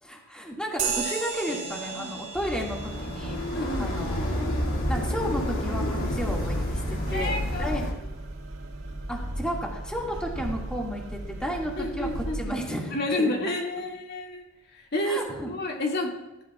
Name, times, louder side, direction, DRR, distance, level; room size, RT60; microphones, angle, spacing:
voice 1, 0.0-3.4 3.8-4.6 4.9-7.8 9.1-13.5 15.0-15.5, equal, 5° left, -2 dB, 2.1 m, -33 dB
sound 1, 0.8-8.7, right 6 dB, 40° right, 4.0 m, -37 dB
voice 2, 1.5-2.2 3.5-3.9 7.1-8.1 11.8-12.4 12.9-14.4 14.7-16.2, left 1 dB, 55° left, -1 dB, 2.2 m, -30 dB
sound 2, 2.3-7.9, equal, 80° left, 2.5 m, -29 dB
sound 3, 6.0-12.5, right 1 dB, 90° right, 1.8 m, -37 dB
22.0 x 12.5 x 2.4 m, 0.96 s
head